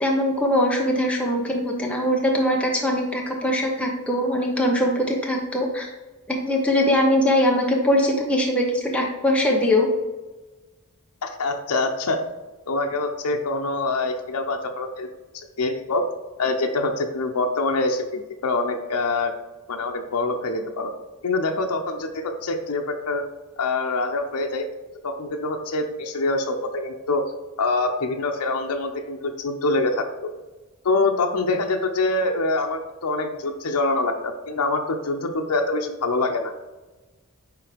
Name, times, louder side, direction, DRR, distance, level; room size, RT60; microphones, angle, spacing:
voice 1, 0.0-5.9 6.3-9.9, left 1 dB, 5° left, -1 dB, 0.7 m, -21 dB
voice 2, 11.2-12.2 12.7-15.1 15.3-16.0 16.4-19.3 19.7-20.9 21.2-23.2 23.6-24.7 25.0-27.2 27.6-30.3 30.8-36.5, left 2 dB, 85° left, 4 dB, 0.7 m, -25 dB
9.7 x 3.3 x 3.5 m, 1.2 s
head